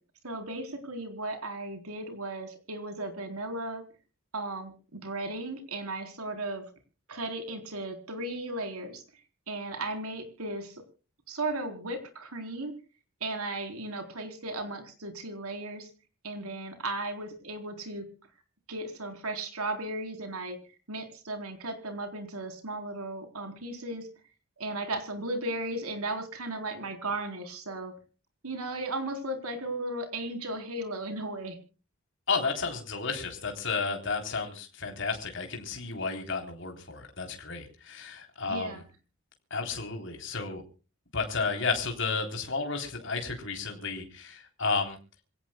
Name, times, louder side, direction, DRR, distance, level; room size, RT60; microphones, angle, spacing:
voice 1, 0.2-3.8 4.3-6.6 7.1-9.0 9.5-10.8 11.3-12.7 13.2-15.9 16.2-18.0 18.7-20.6 20.9-24.1 24.6-27.9 28.4-31.6 38.5-38.8, right 2 dB, 80° right, 6 dB, 4.0 m, -36 dB
voice 2, 32.3-38.8 39.5-40.6 41.1-45.0, left 4 dB, 55° left, 4 dB, 3.5 m, -32 dB
26.5 x 17.0 x 2.3 m, 0.36 s
head